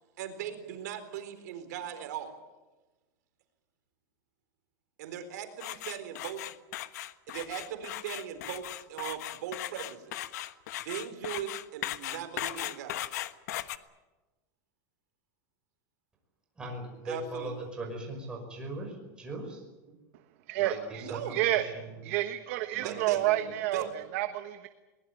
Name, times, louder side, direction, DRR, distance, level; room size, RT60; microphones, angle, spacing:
voice 1, 0.2-2.3 5.0-6.5 7.3-10.3 10.8-13.0 17.0-17.5 19.9-20.0 21.0-21.4 22.8-23.2 23.7-23.9, right 10 dB, 65° right, 8 dB, 4.2 m, -39 dB
sound 1, 5.6-13.8, left 14 dB, 65° left, 1.3 m, -37 dB
voice 2, 16.6-19.6 20.6-21.9 22.7-23.9, right 2 dB, 10° right, 1 dB, 5.6 m, -40 dB
voice 3, 20.5-21.0 21.3-21.6 22.0-23.8 24.1-24.7, right 15 dB, 50° right, 9 dB, 1.2 m, -29 dB
22.5 x 21.0 x 9.0 m, 1.1 s
supercardioid pair, 175°, 10 cm